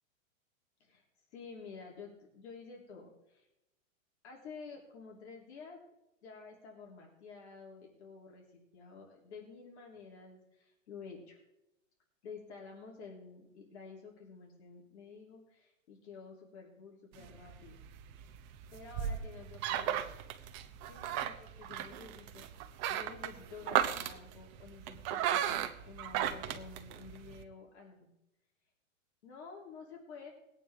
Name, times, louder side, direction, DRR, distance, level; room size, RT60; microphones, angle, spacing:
voice 1, 1.3-3.5 4.2-5.8 6.2-11.4 12.2-17.8 18.7-20.1 20.9-28.1 29.2-30.3, left 5 dB, 55° left, -1 dB, 3.4 m, -51 dB
sound 1, 17.1-27.4, right 10 dB, 25° right, 0.7 m, -36 dB
20.0 x 9.2 x 3.6 m, 0.87 s
hypercardioid pair, 155°, 41 cm